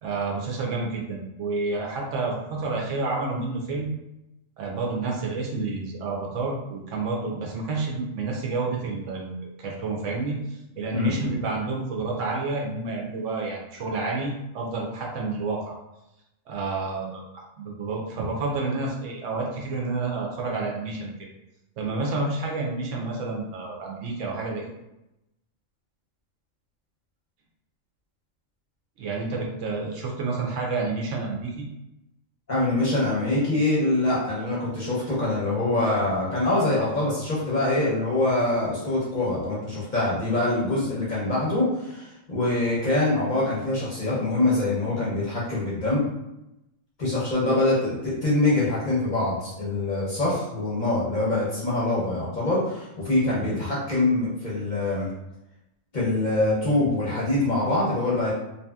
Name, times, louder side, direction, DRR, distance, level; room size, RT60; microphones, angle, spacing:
voice 1, 0.0-3.9 4.6-15.7 16.5-21.1 21.8-24.6 29.0-31.6, right 3 dB, 70° right, -1 dB, 0.9 m, -29 dB
voice 2, 32.5-46.0 47.0-55.1 55.9-58.3, left 2 dB, 45° left, -7 dB, 0.7 m, -24 dB
2.7 x 2.6 x 2.2 m, 0.91 s
omnidirectional pair, 1.4 m